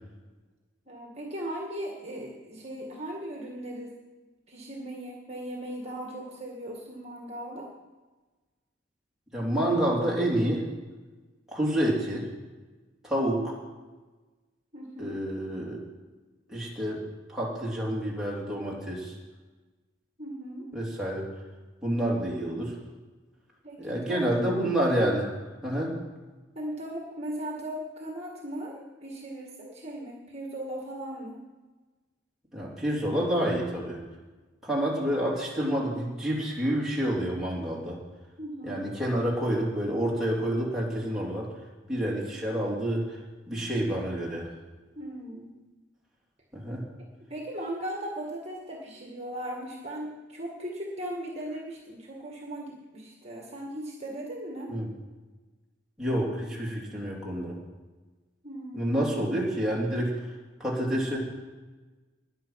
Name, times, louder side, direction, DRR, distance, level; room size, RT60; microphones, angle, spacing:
voice 1, 0.9-3.9 4.5-7.7 9.6-9.8 14.7-15.2 20.2-20.7 23.6-24.3 26.6-31.4 38.4-38.8 45.0-45.6 47.3-54.7 58.4-59.0, right 1 dB, 35° right, -1 dB, 1.9 m, -38 dB
voice 2, 9.3-10.7 11.5-12.3 13.0-13.6 15.0-15.8 16.5-17.0 17.3-19.1 20.7-21.3 21.8-22.8 23.8-25.3 25.6-26.0 32.5-34.0 34.6-38.0 38.6-41.5 41.9-43.2 43.5-44.5 46.5-46.8 54.7-54.9 56.0-57.6 58.7-60.1 60.6-61.3, right 1 dB, ahead, -6 dB, 3.2 m, -28 dB
21.0 x 7.0 x 5.8 m, 1.3 s
head